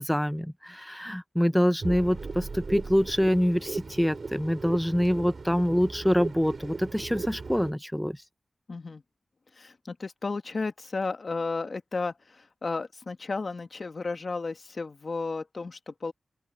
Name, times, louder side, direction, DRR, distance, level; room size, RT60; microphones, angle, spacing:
voice 1, 0.0-8.2, equal, 5° left, 0.8 m, -25 dB
sound 1, 1.8-7.7, right 4 dB, 55° right, 4.3 m, -37 dB
voice 2, 8.7-9.0 9.6-16.1, left 3 dB, 55° left, 1.7 m, -33 dB
open air
cardioid pair, 65°, 0 cm